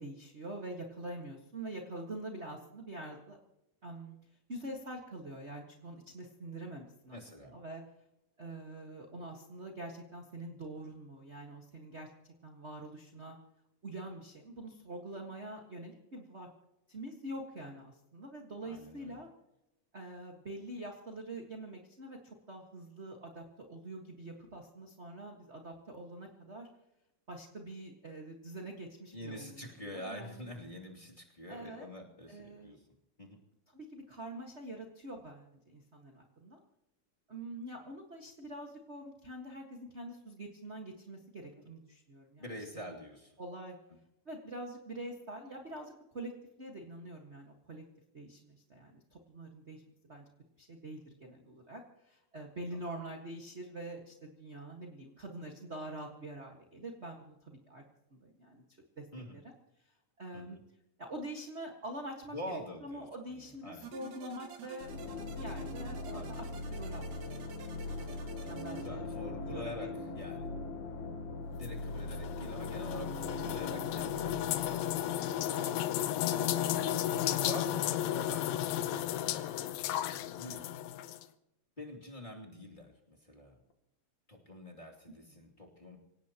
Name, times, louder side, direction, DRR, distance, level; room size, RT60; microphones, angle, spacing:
voice 1, 0.0-3.4 3.8-4.2 4.5-7.2 7.5-7.8 8.4-13.4 13.8-16.5 16.9-19.3 19.9-26.7 27.3-30.5 31.5-31.9 32.3-32.7 33.7-36.6 37.3-42.4 43.4-43.8 44.2-46.3 46.6-47.8 48.1-49.8 50.1-50.2 50.6-57.8 58.1-58.6 59.0-59.1 59.3-59.4 59.8-60.6 61.0-64.9 65.3-66.4 66.7-67.2 67.7-69.1 69.5-69.9 78.1-78.3, right 1 dB, 40° right, 1 dB, 0.9 m, -45 dB
voice 2, 7.1-7.5 18.6-19.2 29.1-32.8 33.2-33.4 42.4-43.4 52.7-52.8 59.1-59.4 60.3-60.6 62.3-63.9 66.1-66.3 68.7-69.9 70.1-70.5 71.5-76.9 77.3-79.9 80.4-80.7 81.8-83.6 84.3-86.0, left 1 dB, 15° left, -2 dB, 2.3 m, -47 dB
sound 1, 63.8-68.9, right 5 dB, 65° right, 3.2 m, -50 dB
sound 2, 64.8-75.6, left 2 dB, 60° left, 2.5 m, -41 dB
sound 3, 71.6-81.2, left 11 dB, 85° left, 2.6 m, -34 dB
27.5 x 17.5 x 3.0 m, 0.89 s
omnidirectional pair, 4.0 m